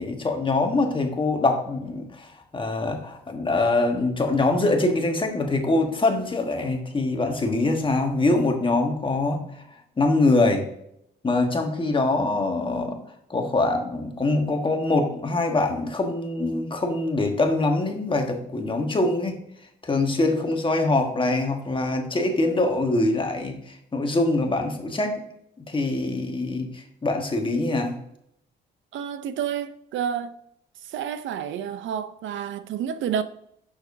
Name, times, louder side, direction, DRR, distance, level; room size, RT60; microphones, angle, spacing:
voice 1, 0.0-9.6 10.0-10.7 11.2-13.0 13.3-19.4 19.8-25.2 25.6-28.0, left 2 dB, 25° left, 1.3 m, -24 dB
voice 2, 28.9-30.4 30.8-33.2, right 8 dB, 75° right, 0.6 m, -29 dB
6.6 x 6.0 x 2.6 m
cardioid pair, 90°, 20 cm